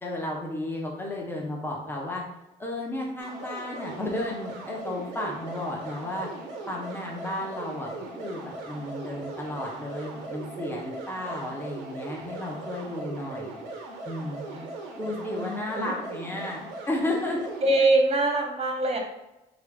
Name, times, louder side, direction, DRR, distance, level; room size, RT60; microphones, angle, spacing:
voice 1, 0.0-2.2 2.6-6.3 6.7-7.9 8.2-13.6 14.0-14.4 14.9-17.4, left 1 dB, 10° left, -2 dB, 0.9 m, -33 dB
sound 1, 3.2-17.8, right 2 dB, 90° right, 0.5 m, -39 dB
voice 2, 15.1-15.9 17.6-19.0, right 2 dB, 30° right, 2 dB, 0.9 m, -24 dB
3.1 x 2.5 x 3.4 m, 0.95 s
hypercardioid pair, 50°, 21 cm